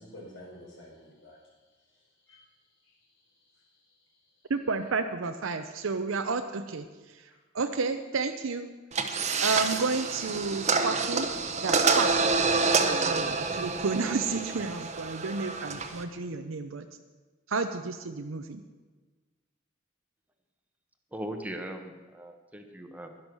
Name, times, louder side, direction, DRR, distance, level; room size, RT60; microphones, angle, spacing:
voice 1, 0.0-1.5 1.9-2.4 2.8-4.5, left 1 dB, 65° left, -2 dB, 4.7 m, -52 dB
voice 2, 4.5-8.7 9.4-11.3 11.6-12.3 12.8-16.9 17.5-18.6, right 4 dB, 70° right, 7 dB, 0.7 m, -31 dB
sound 1, 8.9-16.0, right 4 dB, 35° right, 1.0 m, -27 dB
voice 3, 21.1-23.2, right 1 dB, 10° right, 5 dB, 1.1 m, -39 dB
12.0 x 11.0 x 6.2 m, 1.3 s
head